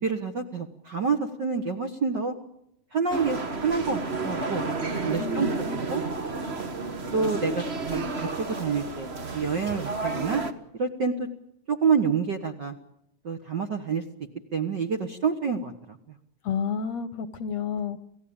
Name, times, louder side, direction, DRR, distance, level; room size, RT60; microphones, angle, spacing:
voice 1, 0.0-2.3 2.9-4.6 5.0-6.0 7.1-7.6 7.9-9.1 9.3-10.4 10.7-11.3 11.7-12.8 13.2-14.0 14.5-16.1, right 5 dB, 50° right, 5 dB, 1.4 m, -28 dB
sound 1, 3.1-10.5, right 3 dB, 70° right, 0.6 m, -31 dB
voice 2, 5.2-5.8 16.4-18.0, left 7 dB, 65° left, 12 dB, 1.9 m, -30 dB
29.0 x 16.5 x 8.8 m, 0.80 s
omnidirectional pair, 3.8 m